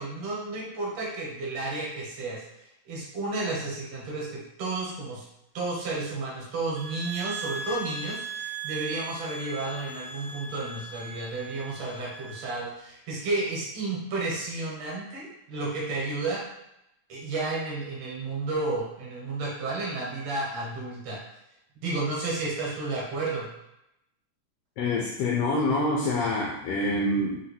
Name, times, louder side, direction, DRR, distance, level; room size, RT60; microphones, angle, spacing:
voice 1, 0.0-2.4 2.9-5.2 5.5-16.4 17.1-21.2 21.8-23.5, right 3 dB, 65° right, -4 dB, 2.2 m, -32 dB
sound 1, 6.8-12.6, right 4 dB, 85° right, 1.9 m, -39 dB
voice 2, 24.8-27.4, left 2 dB, 85° left, -3 dB, 1.3 m, -26 dB
5.0 x 2.2 x 4.1 m, 0.84 s
omnidirectional pair, 3.3 m